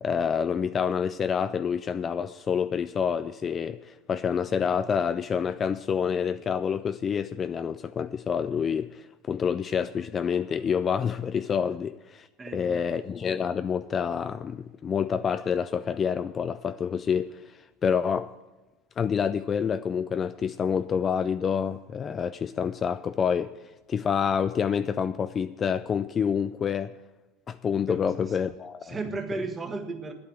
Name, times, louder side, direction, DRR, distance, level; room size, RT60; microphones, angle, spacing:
voice 1, 0.0-18.3 19.0-23.5 23.9-26.9 27.5-29.0, left 7 dB, 30° left, 0.4 m, -28 dB
voice 2, 12.4-13.1 27.9-28.4 28.8-30.1, right 3 dB, 20° right, 1.6 m, -35 dB
9.7 x 8.6 x 8.9 m
supercardioid pair, 120°, 0 cm